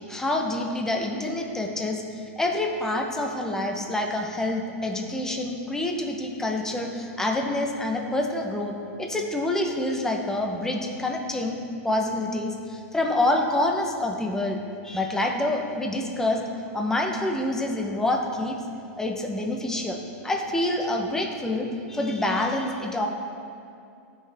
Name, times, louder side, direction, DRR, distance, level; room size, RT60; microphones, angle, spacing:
voice 1, 0.1-11.6 11.8-16.4 16.7-18.6 19.0-23.1, left 1 dB, 5° left, 2 dB, 0.9 m, -27 dB
14.0 x 6.0 x 3.5 m, 2.5 s
supercardioid pair, 140°, 8 cm